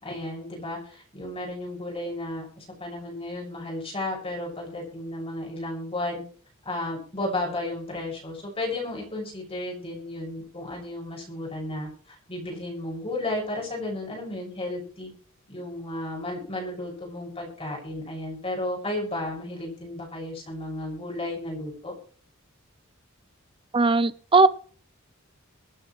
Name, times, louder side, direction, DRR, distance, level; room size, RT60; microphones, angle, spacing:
voice 1, 0.0-6.2 6.6-15.1 15.5-21.9, left 1 dB, 30° left, -2 dB, 6.2 m, -33 dB
voice 2, 23.7-24.5, right 3 dB, 25° right, 15 dB, 0.6 m, -18 dB
23.0 x 9.1 x 3.2 m, 0.43 s
head